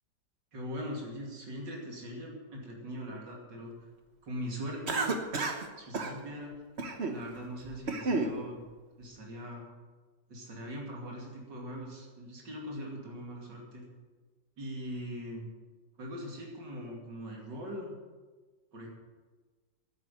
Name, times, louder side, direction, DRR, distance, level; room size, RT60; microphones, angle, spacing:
voice 1, 0.5-3.7 4.2-5.2 5.8-6.5 7.0-8.6 9.0-9.6 10.3-13.8 14.6-15.5 16.0-18.0 18.7-18.9, equal, 90° right, -1 dB, 3.3 m, -41 dB
Cough, 4.9-5.7 5.9-6.1 6.8-7.2 7.6-8.3, right 3 dB, 40° right, 1.3 m, -31 dB
10.5 x 9.0 x 9.2 m, 1.3 s
omnidirectional pair, 1.9 m